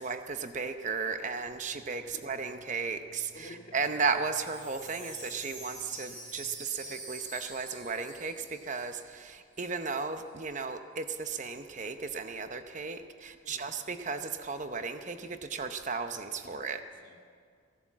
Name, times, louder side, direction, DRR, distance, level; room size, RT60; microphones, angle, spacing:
voice 1, 0.0-16.8, right 4 dB, 35° right, 8 dB, 0.8 m, -35 dB
sound 1, 1.5-6.5, right 2 dB, ahead, 1.3 m, -60 dB
voice 2, 3.3-3.9 13.4-13.7 16.4-17.2, left 1 dB, 40° left, 1 dB, 2.0 m, -51 dB
Wind chime, 4.1-9.3 9.5-9.6 9.8-10.3, right 1 dB, 20° right, 5.2 m, -46 dB
16.5 x 11.5 x 7.3 m, 2.1 s
head